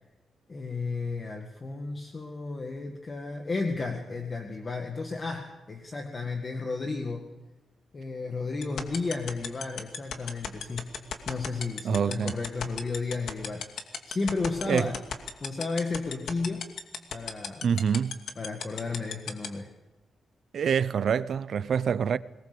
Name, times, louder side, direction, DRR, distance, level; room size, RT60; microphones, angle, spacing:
voice 1, 0.5-7.3 7.9-15.0 15.4-16.7 17.1-17.7 18.4-19.7, left 3 dB, 25° left, 1.9 m, -33 dB
sound 1, 8.6-19.5, left 8 dB, 70° left, 2.4 m, -32 dB
voice 2, 11.8-12.3 14.7-14.9 17.6-18.2 20.5-22.2, right 7 dB, 55° right, 0.7 m, -26 dB
22.5 x 20.5 x 6.9 m
wide cardioid pair, 160°, 0 cm